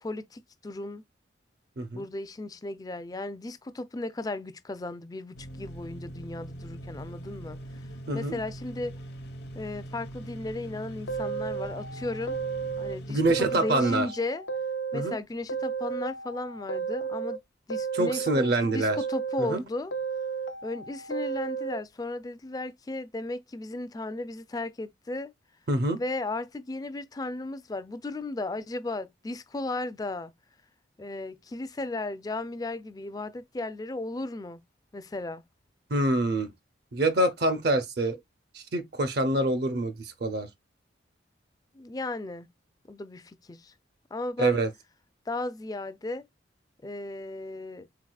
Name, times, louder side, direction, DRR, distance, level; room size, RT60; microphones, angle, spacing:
voice 1, 0.0-1.1 1.9-7.8 8.1-9.0 9.5-12.4 12.8-14.4 14.9-17.4 17.7-19.9 20.6-25.3 26.0-30.3 31.0-34.6 34.9-35.4 41.7-42.5 42.9-43.7 44.1-44.6 45.3-46.3 46.8-47.9, left 2 dB, 20° left, 0.4 m, -35 dB
sound 1, 5.3-13.6, right 1 dB, 60° left, 0.8 m, -42 dB
voice 2, 8.1-8.4 13.1-14.1 14.9-15.2 17.9-19.0 19.4-19.6 25.7-26.0 35.9-36.5 36.9-38.2 38.5-40.5 44.4-44.7, right 2 dB, 55° right, 0.6 m, -26 dB
sound 2, 11.1-13.0 13.3-15.2 15.5-17.4 17.7-19.6 19.9-21.8, right 5 dB, 90° left, 0.6 m, -33 dB
4.7 x 4.0 x 2.2 m
head